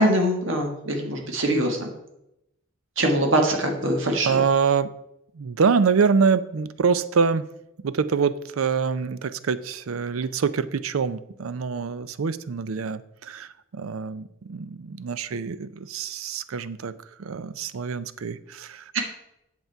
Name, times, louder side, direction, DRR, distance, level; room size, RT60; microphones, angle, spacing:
voice 1, 0.0-1.9 3.0-4.4 18.9-19.0, right 1 dB, 65° right, 3 dB, 1.5 m, -23 dB
voice 2, 4.2-4.9 5.4-7.5 7.8-16.9 17.2-18.8, right 5 dB, 80° right, 15 dB, 0.5 m, -25 dB
8.0 x 7.3 x 4.5 m, 0.84 s
head